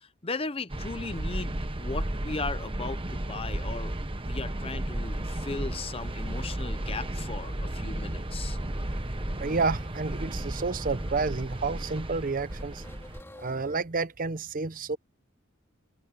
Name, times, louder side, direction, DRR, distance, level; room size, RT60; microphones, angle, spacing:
voice 1, 0.0-3.9 4.2-8.6, left 3 dB, 25° left, 0.8 m, -37 dB
sound 1, 0.7-13.2, right 1 dB, 25° right, 1.2 m, -33 dB
sound 2, 4.8-13.8, left 1 dB, 10° left, 2.9 m, -51 dB
voice 2, 9.4-12.8 13.4-15.0, right 4 dB, 40° right, 0.7 m, -30 dB
head